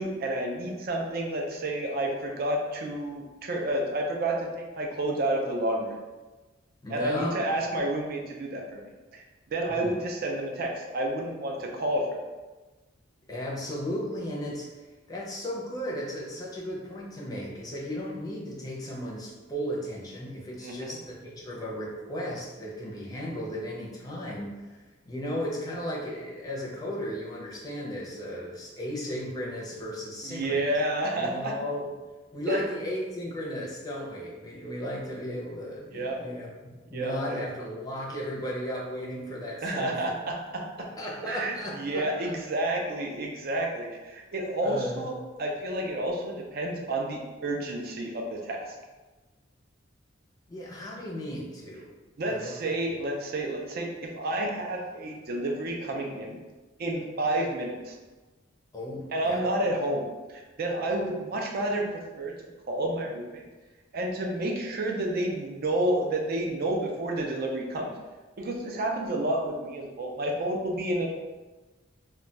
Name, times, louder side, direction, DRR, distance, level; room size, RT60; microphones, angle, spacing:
voice 1, 0.0-4.5 4.8-6.0 6.9-8.8 9.1-9.2 9.5-12.2 20.6-20.9 30.2-31.5 32.5-32.6 35.9-36.2 36.9-37.4 39.6-40.7 41.2-45.1 45.4-48.7 52.2-56.4 56.8-57.9 59.1-62.4 62.7-63.4 63.9-67.9 68.4-71.1, right 1 dB, 50° right, 1 dB, 0.4 m, -30 dB
voice 2, 6.8-7.4 9.7-10.0 13.3-14.7 15.1-30.7 31.2-31.9 32.3-40.0 40.8-42.3 44.6-45.1 50.5-51.9 52.2-52.6 52.9-53.0 58.7-59.4, equal, 20° left, -4 dB, 0.5 m, -35 dB
2.2 x 2.2 x 3.8 m, 1.2 s
head